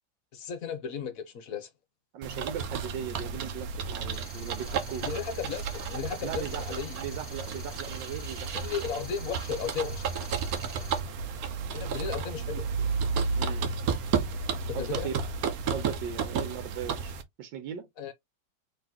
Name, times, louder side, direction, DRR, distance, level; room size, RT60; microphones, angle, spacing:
voice 1, 0.3-1.7 5.0-6.9 8.5-10.1 11.7-12.7 14.7-15.1 18.0-18.1, left 7 dB, 60° left, 1.1 m, -35 dB
voice 2, 2.1-5.1 6.2-8.5 13.4-13.7 14.7-15.1 15.7-17.1 17.4-17.9, right 8 dB, 80° right, 1.4 m, -38 dB
sound 1, 2.2-17.2, right 5 dB, 65° right, 1.0 m, -32 dB
sound 2, 4.1-11.0, left 6 dB, 35° left, 0.7 m, -50 dB
3.9 x 3.3 x 2.9 m
omnidirectional pair, 1.9 m